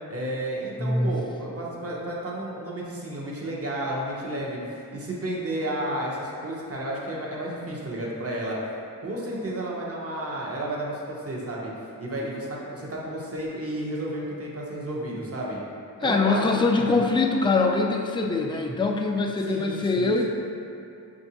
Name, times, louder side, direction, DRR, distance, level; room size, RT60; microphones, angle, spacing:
voice 1, 0.1-4.6 4.9-8.6 9.0-11.7 12.0-15.6 16.0-17.1 19.5-20.3, right 1 dB, 40° right, -4 dB, 0.8 m, -32 dB
voice 2, 0.8-1.1 16.0-20.3, left 3 dB, 15° left, 1 dB, 0.3 m, -23 dB
5.1 x 2.6 x 2.8 m, 2.6 s
cardioid pair, 50°, 36 cm